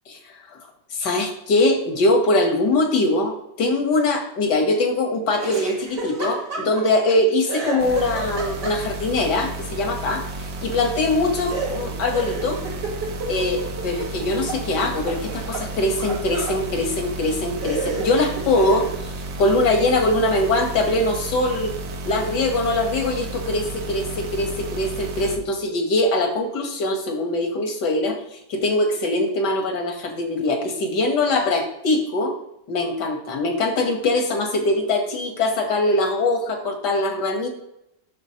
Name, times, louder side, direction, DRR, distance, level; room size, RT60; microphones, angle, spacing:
voice 1, 0.3-0.6 0.9-10.3 10.6-12.6 13.3-21.7 22.1-32.4 32.7-37.5, left 2 dB, 75° left, 4 dB, 1.7 m, -22 dB
Laughter, 5.4-7.1 7.5-9.1 11.5-14.6 14.9-16.6 17.2-17.3 17.6-19.0, right 3 dB, 80° right, 2.5 m, -31 dB
sound 1, 7.8-25.4, right 2 dB, 60° right, 1.2 m, -33 dB
8.5 x 6.0 x 2.8 m, 0.81 s
omnidirectional pair, 1.8 m